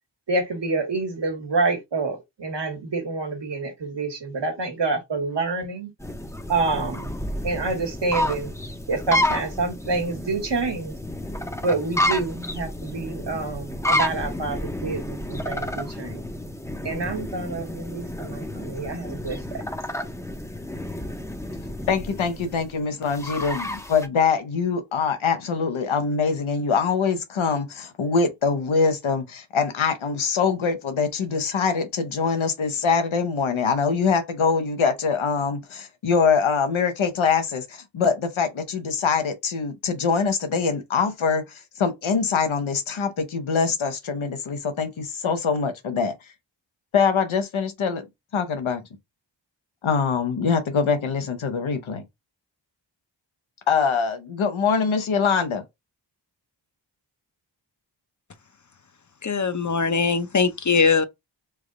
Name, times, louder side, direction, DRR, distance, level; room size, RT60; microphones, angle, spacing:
voice 1, 0.3-5.9 6.5-7.1 7.4-8.5 8.9-10.9 11.6-16.2 16.8-19.6, right 3 dB, 60° right, 1.2 m, -27 dB
sound 1, 6.0-24.1, left 1 dB, 5° left, 0.6 m, -30 dB
voice 2, 21.9-46.1 46.9-48.0 48.3-48.8 49.8-52.0 53.7-55.6, left 5 dB, 85° left, 0.9 m, -23 dB
voice 3, 59.2-61.0, left 5 dB, 40° left, 0.7 m, -21 dB
3.4 x 2.2 x 3.7 m
wide cardioid pair, 55°, 47 cm